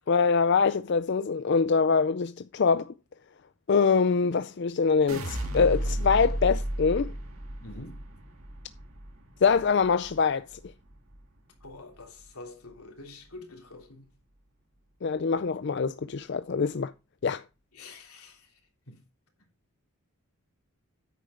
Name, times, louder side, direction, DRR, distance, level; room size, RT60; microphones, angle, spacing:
voice 1, 0.1-2.9 3.7-7.1 9.4-10.5 15.0-16.9 17.2-17.4, left 5 dB, 50° left, 0.4 m, -24 dB
sound 1, 5.1-11.3 11.6-12.2, right 1 dB, 75° right, 1.9 m, -34 dB
voice 2, 7.6-8.1 11.6-14.1 17.7-18.6 18.9-19.0, left 2 dB, 90° left, 3.1 m, -46 dB
9.6 x 8.3 x 3.7 m
head